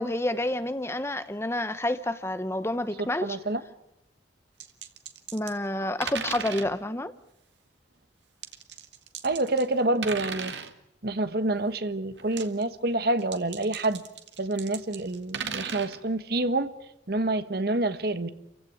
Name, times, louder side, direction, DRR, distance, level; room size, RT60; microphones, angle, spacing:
voice 1, 0.0-3.4 5.3-7.1, left 1 dB, 15° left, 1.0 m, -29 dB
voice 2, 3.0-3.6 9.2-10.6 11.0-14.0 14.4-16.7 17.1-18.3, right 2 dB, 60° right, 1.4 m, -27 dB
sound 1, 4.6-5.6 6.0-6.8 8.4-9.7 10.0-10.7 12.2-12.6 13.2-16.0, right 7 dB, 80° right, 1.9 m, -36 dB
29.0 x 16.0 x 9.6 m
head